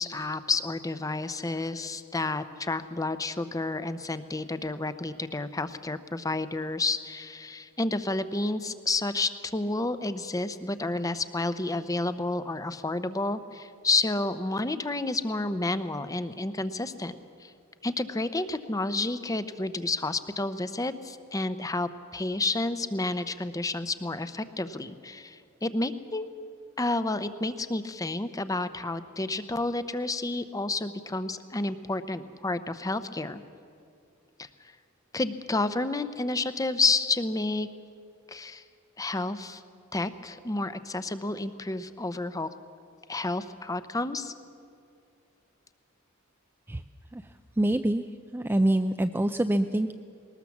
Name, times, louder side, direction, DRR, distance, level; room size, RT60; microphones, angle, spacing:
voice 1, 0.0-17.5 17.8-26.3 26.8-33.4 34.4-34.5 35.1-37.7 38.3-38.6 39.0-39.6 39.9-42.5 43.1-44.3, left 2 dB, 15° left, 12 dB, 0.7 m, -30 dB
voice 2, 47.6-48.0 48.3-49.9, right 1 dB, 10° right, 7 dB, 0.4 m, -25 dB
20.0 x 19.0 x 7.2 m, 2.4 s
head